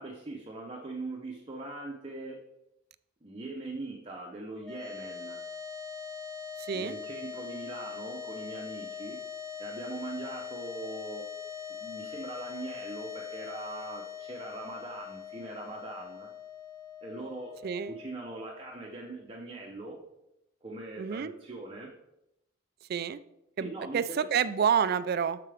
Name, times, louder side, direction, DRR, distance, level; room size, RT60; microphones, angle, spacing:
voice 1, 0.0-2.4 3.2-5.4 6.7-9.2 9.6-11.3 11.7-16.3 17.0-17.6 17.9-20.0 20.6-21.9 23.6-24.3, right 2 dB, 25° right, -1 dB, 0.7 m, -41 dB
sound 1, 4.6-19.0, left 7 dB, 5° left, 1.4 m, -42 dB
voice 2, 17.6-17.9 21.0-21.3 22.9-23.2 23.6-25.4, right 7 dB, 50° right, 14 dB, 0.3 m, -28 dB
7.2 x 6.7 x 3.4 m, 0.86 s
head